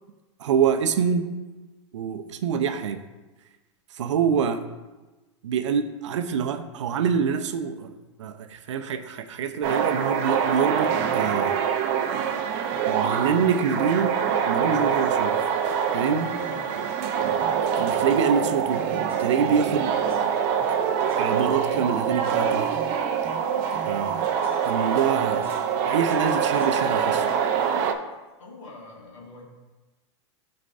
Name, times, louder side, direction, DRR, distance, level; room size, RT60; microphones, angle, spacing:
voice 1, 0.4-1.3 1.9-3.0 4.0-4.6 5.4-7.9 8.2-11.6 12.9-14.2 14.5-15.4 15.9-16.3 17.8-18.9 19.2-19.9 21.2-22.7 23.8-24.3 24.6-25.5 25.9-27.3, right 7 dB, 80° right, 9 dB, 0.7 m, -25 dB
sound 1, 9.6-27.9, right 7 dB, 45° right, 0.7 m, -25 dB
sound 2, 16.4-16.8 17.4-17.7 18.4-19.8 20.1-20.7 21.1-22.1 22.7-25.1 25.4-27.3, right 3 dB, 15° right, 1.8 m, -46 dB
voice 2, 28.4-29.4, left 3 dB, 85° left, -3 dB, 2.2 m, -44 dB
13.0 x 4.4 x 2.6 m, 1.2 s
hypercardioid pair, 120°, 15 cm